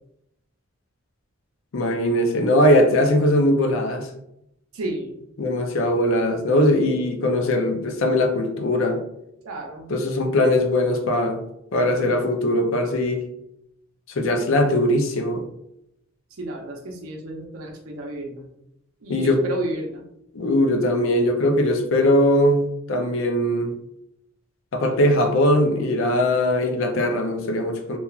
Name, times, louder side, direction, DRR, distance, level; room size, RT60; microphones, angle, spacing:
voice 1, 1.7-4.1 5.4-9.0 9.9-11.4 11.7-13.2 14.1-15.4 19.1-19.4 20.3-22.6 22.9-23.7 24.7-28.0, left 1 dB, 65° left, 4 dB, 0.5 m, -20 dB
voice 2, 4.7-5.2 9.4-9.9 11.8-12.3 16.4-18.5 19.0-20.0, right 1 dB, 90° right, 1 dB, 0.6 m, -32 dB
2.9 x 2.3 x 2.3 m, 0.79 s
head